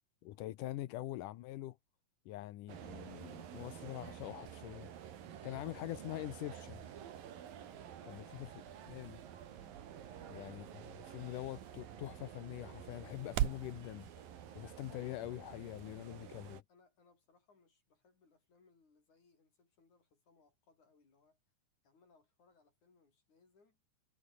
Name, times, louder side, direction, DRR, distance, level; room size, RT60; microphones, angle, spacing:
voice 1, 0.2-1.8 2.3-4.9 5.4-6.9 8.1-8.2 8.9-9.2 10.3-14.3 14.6-16.6, left 15 dB, 75° left, 2.4 m, -44 dB
sound 1, 2.7-16.6, right 9 dB, 90° right, 3.9 m, -51 dB
sound 2, 7.5-13.7, right 13 dB, 70° right, 2.4 m, -44 dB
voice 2, 7.7-8.6 10.1-10.4 15.8-21.4 21.8-23.8, left 4 dB, 60° left, 7.7 m, -69 dB
sound 3, 8.8-15.6, right 4 dB, 30° right, 3.0 m, -67 dB
omnidirectional pair, 3.9 m